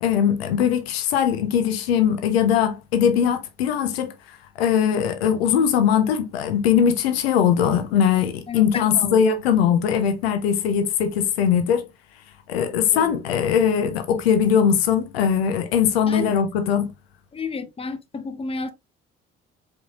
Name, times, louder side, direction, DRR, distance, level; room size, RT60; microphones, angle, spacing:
voice 1, 0.0-11.8 12.5-16.9, left 8 dB, 70° left, 0.7 m, -20 dB
voice 2, 17.4-18.7, left 3 dB, 20° left, 0.7 m, -30 dB
4.7 x 3.8 x 2.4 m
figure-of-eight pair, 45°, 32 cm